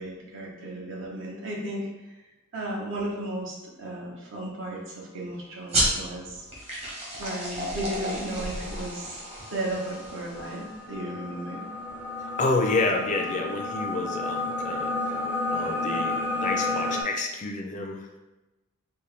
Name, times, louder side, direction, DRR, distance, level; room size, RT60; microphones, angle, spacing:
voice 1, 0.0-2.1 2.5-6.4 7.2-9.2 9.5-11.7, right 1 dB, 65° right, -3 dB, 1.0 m, -34 dB
sound 1, 5.7-10.8, right 1 dB, 30° right, 1.1 m, -31 dB
sound 2, 8.4-17.0, left 2 dB, 10° right, 0.6 m, -31 dB
voice 2, 12.2-15.2 15.5-18.2, left 3 dB, 35° left, 3 dB, 0.4 m, -29 dB
4.3 x 2.2 x 3.3 m, 1.1 s
head